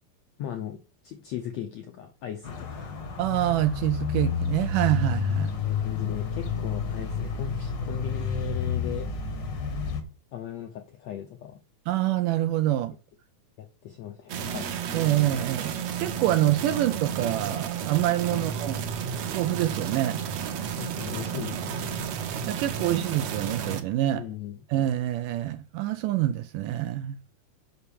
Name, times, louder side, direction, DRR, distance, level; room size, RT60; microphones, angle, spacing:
voice 1, 0.4-2.9 5.6-9.1 10.3-11.6 13.6-14.8 18.3-18.5 20.7-22.1 24.1-24.6, left 11 dB, 80° left, 1.5 m, -37 dB
sound 1, 2.4-10.0, left 6 dB, 55° left, 1.2 m, -30 dB
voice 2, 3.2-5.5 11.9-13.0 14.9-18.8 19.3-20.2 22.4-24.3 24.7-27.2, right 13 dB, 80° right, 1.9 m, -26 dB
sound 2, 14.3-23.8, right 7 dB, 65° right, 1.7 m, -32 dB
6.7 x 5.9 x 7.0 m
omnidirectional pair, 4.2 m